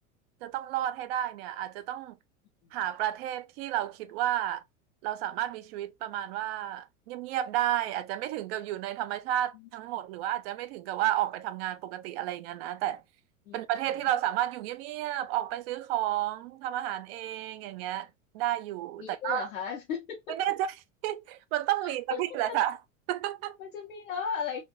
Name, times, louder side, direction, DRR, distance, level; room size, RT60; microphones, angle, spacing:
voice 1, 0.4-2.1 2.7-4.6 5.0-13.0 13.5-18.1 18.3-19.5 20.3-20.7 21.0-22.8 23.1-23.6, right 13 dB, 50° right, 0.5 m, -31 dB
voice 2, 19.0-20.2 21.8-22.2 22.5-22.6 23.6-24.6, left 7 dB, 75° left, 0.9 m, -35 dB
3.2 x 2.6 x 2.8 m
hypercardioid pair, 90°, 41 cm